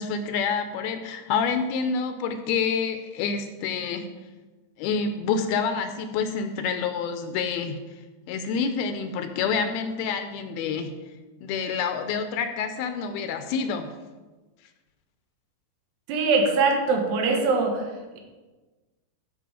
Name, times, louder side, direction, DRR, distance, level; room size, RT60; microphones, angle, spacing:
voice 1, 0.0-4.1 4.8-7.8 8.3-10.9 11.4-13.9, left 6 dB, 80° left, 8 dB, 2.4 m, -27 dB
voice 2, 16.1-18.2, right 4 dB, 85° right, 3 dB, 3.5 m, -23 dB
14.0 x 6.4 x 4.9 m, 1.2 s
omnidirectional pair, 4.6 m